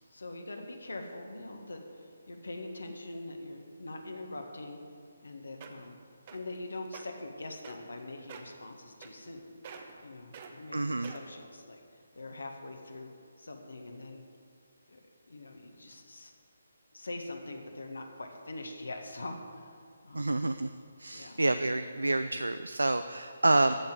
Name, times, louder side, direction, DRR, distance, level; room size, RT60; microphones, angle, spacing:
voice 1, 0.1-4.8 5.2-6.0 6.3-9.5 10.0-14.2 14.9-15.0 15.3-16.3 16.9-20.4 21.1-21.4, left 2 dB, 70° left, 3 dB, 1.8 m, -43 dB
sound 1, 5.2-5.3 5.6-5.9 6.3-6.6 6.9-7.0 7.6-8.0 8.3-8.6 9.0-9.4 9.6-10.0 10.3-10.5 11.0-11.4 12.0-12.1, right 6 dB, 35° right, 1.2 m, -46 dB
voice 2, 10.7-11.1 20.1-20.7 21.0-23.8, right 2 dB, 80° right, 11 dB, 0.5 m, -28 dB
14.0 x 5.9 x 9.5 m, 2.2 s
figure-of-eight pair, 145°, 0 cm